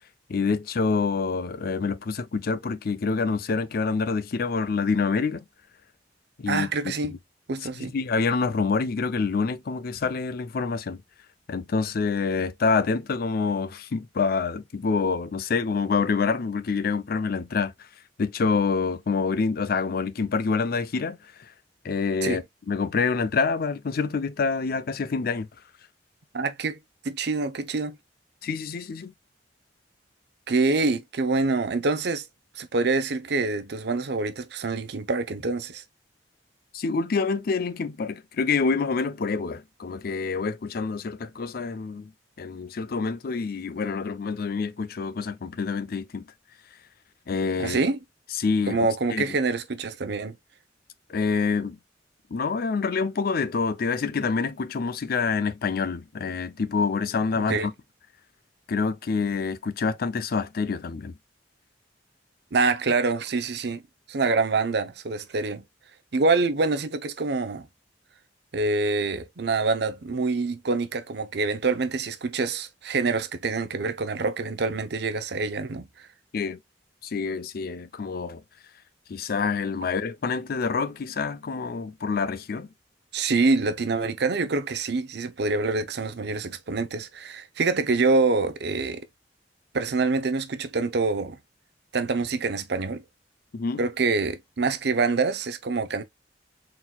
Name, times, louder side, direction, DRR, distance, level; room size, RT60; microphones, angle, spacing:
voice 1, 0.3-5.4 6.4-6.7 7.7-11.0 11.5-17.7 18.2-21.2 21.8-25.5 28.4-29.1 36.7-42.1 42.4-46.2 47.3-47.8 48.4-48.8 49.1-49.4 51.1-51.8 52.3-57.7 58.7-61.1 76.3-76.6 77.0-78.4 79.1-82.7 93.5-93.8, left 4 dB, 55° left, 0.5 m, -27 dB
voice 2, 6.5-7.1 7.5-7.9 22.2-22.4 26.3-26.8 27.0-28.0 30.5-32.2 32.6-35.8 47.6-48.0 48.7-50.4 57.5-57.7 62.5-63.8 64.1-65.6 66.1-67.7 68.5-75.9 83.1-89.0 89.7-91.4 91.9-93.0 93.8-96.0, right 3 dB, 65° right, 0.6 m, -26 dB
4.3 x 3.8 x 2.2 m
head